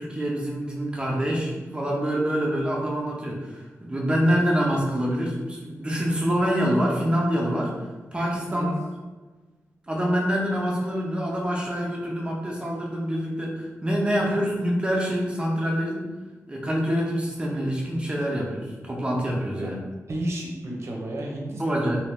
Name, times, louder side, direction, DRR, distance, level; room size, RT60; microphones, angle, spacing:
voice 1, 0.0-7.8 8.1-8.8 9.9-16.1 16.5-19.7 21.6-22.0, equal, 20° right, -2 dB, 0.7 m, -26 dB
voice 2, 20.1-22.0, right 1 dB, 55° right, -1 dB, 0.7 m, -32 dB
2.8 x 2.7 x 3.4 m, 1.2 s
wide cardioid pair, 130°, 5 cm